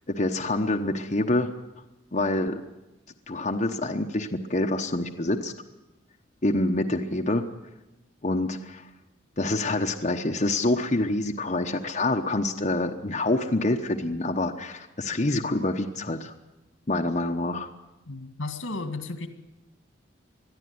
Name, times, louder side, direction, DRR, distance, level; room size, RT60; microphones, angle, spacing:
voice 1, 0.1-1.5 2.1-2.6 3.3-5.5 6.4-7.4 8.2-8.9 9.4-16.3 16.9-17.7, left 2 dB, 35° left, 3 dB, 1.0 m, -26 dB
voice 2, 18.1-19.3, left 3 dB, 80° left, 8 dB, 1.9 m, -34 dB
21.5 x 13.5 x 9.5 m, 0.97 s
head